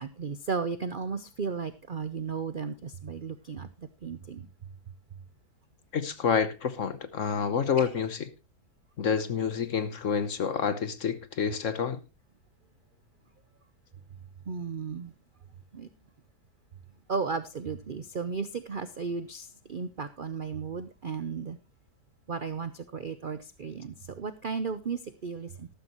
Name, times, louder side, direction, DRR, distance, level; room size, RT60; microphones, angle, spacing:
voice 1, 0.0-3.7 4.0-4.5 7.8-7.9 14.5-15.1 15.7-15.9 17.1-21.6 22.3-25.7, right 5 dB, 60° right, 0.5 m, -34 dB
voice 2, 5.9-8.3 9.0-12.0, left 6 dB, 55° left, 1.2 m, -28 dB
13.5 x 12.5 x 3.0 m
omnidirectional pair, 1.8 m